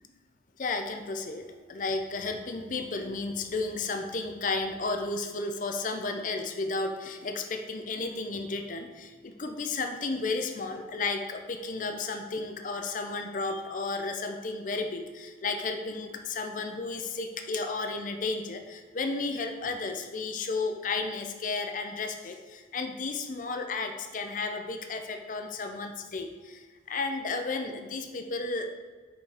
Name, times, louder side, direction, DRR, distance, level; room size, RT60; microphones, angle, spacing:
voice 1, 0.6-28.8, left 3 dB, 45° left, 6 dB, 0.5 m, -33 dB
5.0 x 5.0 x 3.8 m, 1.5 s
head